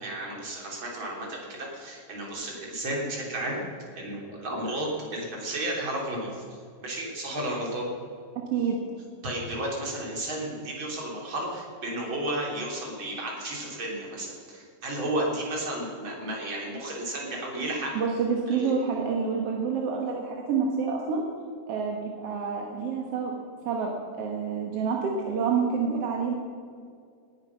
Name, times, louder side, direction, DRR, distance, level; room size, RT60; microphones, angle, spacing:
voice 1, 0.0-3.6 3.9-6.4 6.8-7.9 9.2-17.9 18.5-18.7, right 1 dB, 35° right, -2 dB, 3.8 m, -33 dB
voice 2, 8.5-8.8 17.9-21.2 21.7-23.3 23.7-26.3, right 5 dB, 55° right, 0 dB, 1.9 m, -28 dB
19.0 x 10.5 x 5.8 m, 2.2 s
omnidirectional pair, 4.2 m